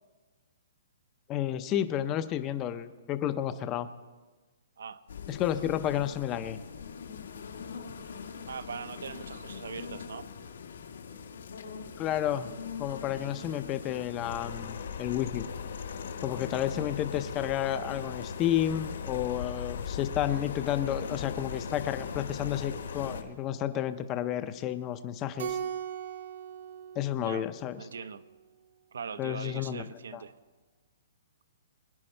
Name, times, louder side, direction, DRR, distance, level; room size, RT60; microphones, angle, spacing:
voice 1, 1.3-3.9 5.3-6.6 12.0-12.5 12.8-15.5 16.2-25.6 27.0-27.8 29.2-29.8 30.1-30.2, left 11 dB, 15° left, 11 dB, 0.5 m, -31 dB
sound 1, 5.1-23.2, left 6 dB, 85° left, 1.5 m, -42 dB
voice 2, 8.5-10.3 27.2-27.5 27.8-28.2 28.9-30.3, right 6 dB, 80° right, 13 dB, 0.8 m, -41 dB
sound 2, 14.2-23.2, left 6 dB, 70° left, 1.4 m, -41 dB
Keyboard (musical), 25.4-28.0, right 8 dB, 40° right, 0.8 m, -39 dB
23.0 x 10.5 x 4.4 m, 1.3 s
hypercardioid pair, 180°, 0 cm